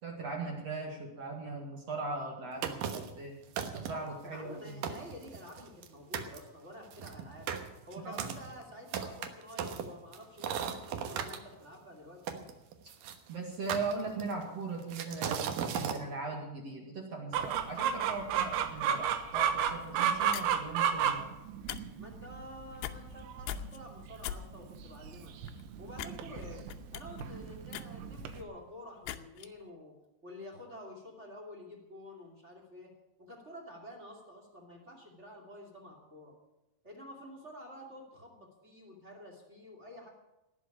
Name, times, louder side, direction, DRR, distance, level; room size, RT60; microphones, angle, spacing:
voice 1, 0.0-3.4 3.7-4.9 8.0-8.2 12.8-12.9 13.3-21.3, right 3 dB, 45° right, 0 dB, 2.4 m, -39 dB
sound 1, 2.6-3.2 3.6-4.1 4.5-4.6 4.8-5.9 6.1-6.4 6.9-11.4 12.3-13.2 13.7-14.4 14.9-16.0, right 8 dB, 70° right, 2.3 m, -37 dB
voice 2, 4.2-7.5 7.9-12.4 22.0-25.3 25.8-26.7 26.9-29.9 30.2-32.9 33.2-36.3 36.8-40.1, left 1 dB, 20° right, 0 dB, 1.9 m, -49 dB
Chicken rooster, 17.3-28.4, right 8 dB, 85° right, 3.5 m, -33 dB
sound 2, 19.8-20.0 20.3-20.6 21.5-21.8 22.1-22.3 22.7-23.2 23.5-23.8 24.2-24.4 24.8-24.9 25.4-25.6 25.9-26.1 26.4-28.5 29.0-29.5, left 13 dB, 80° left, 2.8 m, -40 dB
18.5 x 6.3 x 9.9 m, 0.96 s
omnidirectional pair, 5.2 m